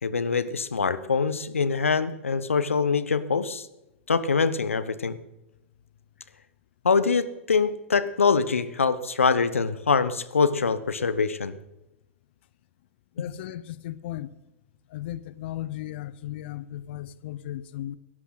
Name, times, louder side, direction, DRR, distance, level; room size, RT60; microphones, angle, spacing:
voice 1, 0.0-3.7 4.1-5.2 6.8-11.5 13.2-13.3, left 5 dB, 80° left, 1.0 m, -24 dB
voice 2, 13.2-14.3 14.9-18.0, left 13 dB, 55° left, 0.8 m, -36 dB
17.0 x 14.0 x 4.0 m
figure-of-eight pair, 100°, 7 cm